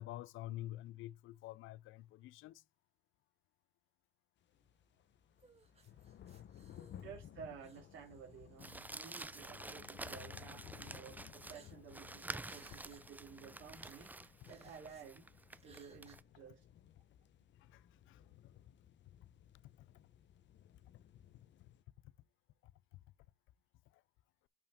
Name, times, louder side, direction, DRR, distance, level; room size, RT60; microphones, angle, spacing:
voice 1, 0.0-2.6 17.7-17.8 18.1-18.5 19.6-19.7 22.6-22.7, left 15 dB, 85° left, 0.4 m, -48 dB
sound 1, 4.4-21.8, left 10 dB, 65° left, 0.8 m, -58 dB
sound 2, 5.4-7.3 7.6-8.7 9.3-9.5 9.8-10.4 11.5-12.1 12.4-13.0 13.4-13.5 13.8-15.1 15.5-16.1, right 4 dB, 30° right, 2.1 m, -66 dB
voice 2, 5.7-6.0 7.0-15.3 15.6-16.6, right 7 dB, 80° right, 3.5 m, -54 dB
Crumpling crinkling, 8.6-16.2, right 2 dB, 10° right, 0.4 m, -49 dB
6.8 x 5.5 x 3.6 m
cardioid pair, 90°, 20 cm